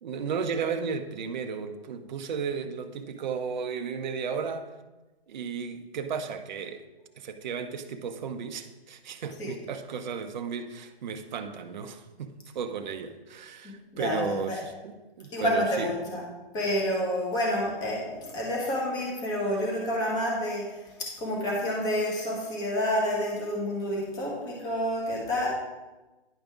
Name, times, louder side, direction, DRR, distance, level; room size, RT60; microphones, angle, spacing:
voice 1, 0.0-4.7 5.3-6.8 7.2-16.2, right 6 dB, 45° right, 7 dB, 0.7 m, -34 dB
voice 2, 13.6-14.6 15.3-16.3 16.5-25.5, left 1 dB, 10° left, -3 dB, 1.3 m, -29 dB
10.0 x 5.1 x 3.5 m, 1.1 s
hypercardioid pair, 155°, 31 cm